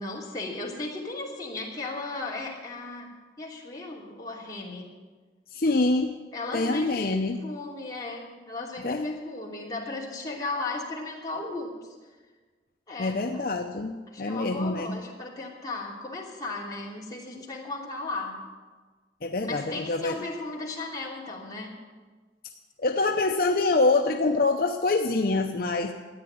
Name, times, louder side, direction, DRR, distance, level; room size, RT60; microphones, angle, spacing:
voice 1, 0.0-4.9 6.3-11.9 12.9-13.4 14.1-18.4 19.4-21.7, left 2 dB, 20° left, -4 dB, 3.0 m, -36 dB
voice 2, 5.5-6.2 6.5-7.4 8.8-9.1 13.0-15.0 19.2-20.2 22.8-25.9, left 3 dB, 55° left, 3 dB, 0.7 m, -25 dB
13.5 x 9.6 x 9.5 m, 1.4 s
head